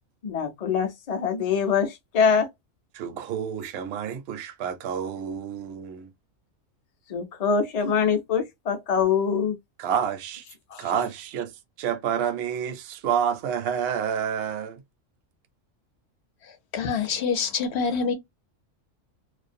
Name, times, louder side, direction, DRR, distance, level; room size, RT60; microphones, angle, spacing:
voice 1, 0.2-2.5 7.1-9.6 10.7-10.9, left 6 dB, 45° left, 0.5 m, -24 dB
voice 2, 2.9-6.1 9.8-10.4 10.8-11.5 11.8-14.8, right 8 dB, 65° right, 0.7 m, -29 dB
voice 3, 16.4-18.1, left 5 dB, 65° left, 0.8 m, -26 dB
2.4 x 2.1 x 2.5 m
omnidirectional pair, 1.3 m